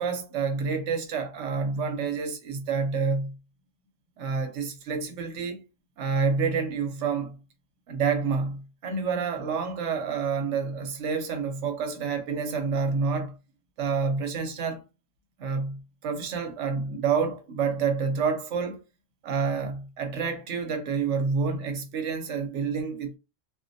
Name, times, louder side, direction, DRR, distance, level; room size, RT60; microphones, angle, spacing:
voice 1, 0.0-3.3 4.2-5.6 6.0-7.3 7.9-13.3 13.8-14.8 15.4-18.8 19.2-23.2, right 5 dB, 70° right, 0.9 m, -28 dB
2.3 x 2.0 x 2.6 m
omnidirectional pair, 1.3 m